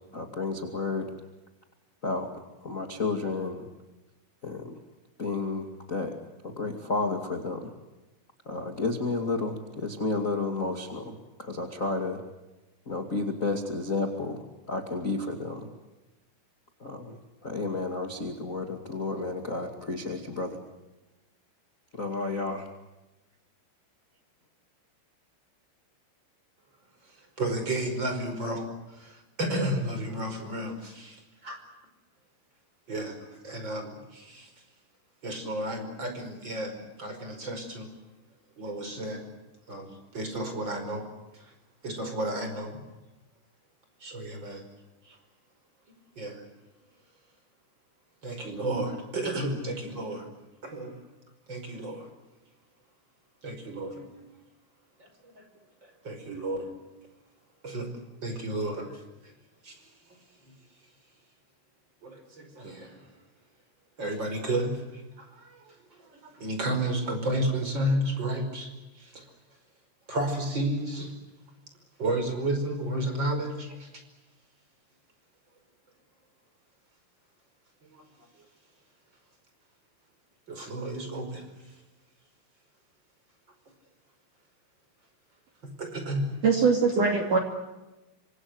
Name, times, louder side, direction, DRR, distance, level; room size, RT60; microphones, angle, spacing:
voice 1, 0.1-1.1 2.0-2.3 2.6-3.6 4.4-4.8 5.2-6.1 6.4-7.7 8.4-12.2 12.8-15.7 16.8-17.2 17.4-20.6 21.9-22.7, left 3 dB, 40° left, 4 dB, 1.1 m, -31 dB
voice 2, 27.1-31.6 32.9-34.5 35.2-37.9 38.6-39.2 39.7-41.1 41.3-41.5 41.8-42.8 44.0-44.6 45.0-45.2 46.2-46.4 48.2-50.3 50.6-51.0 51.5-52.1 53.4-54.1 55.0-55.4 55.8-56.7 57.6-57.9 58.2-59.3 59.6-60.2 62.0-63.1 64.0-69.3 70.1-71.2 72.0-73.9 77.8-78.0 80.5-81.5 85.6-86.3, right 1 dB, 20° right, 7 dB, 5.2 m, -32 dB
voice 3, 86.4-87.4, right 5 dB, 45° right, 3 dB, 3.4 m, -22 dB
27.0 x 26.0 x 8.0 m, 1.0 s
omnidirectional pair, 6.0 m